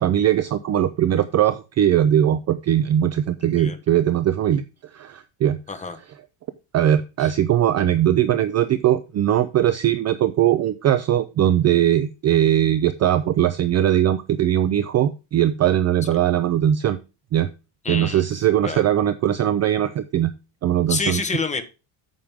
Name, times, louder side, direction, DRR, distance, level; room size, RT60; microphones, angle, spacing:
voice 1, 0.0-4.6 4.9-5.6 6.7-17.0 17.3-17.5 17.9-20.3 20.6-21.2, right 11 dB, 35° right, 0.4 m, -20 dB
voice 2, 3.4-3.8 5.7-6.0 7.2-7.3 17.8-18.2 18.6-18.8 20.9-21.6, left 4 dB, 15° left, 1.0 m, -27 dB
8.8 x 7.4 x 3.5 m
cardioid pair, 180°, 49 cm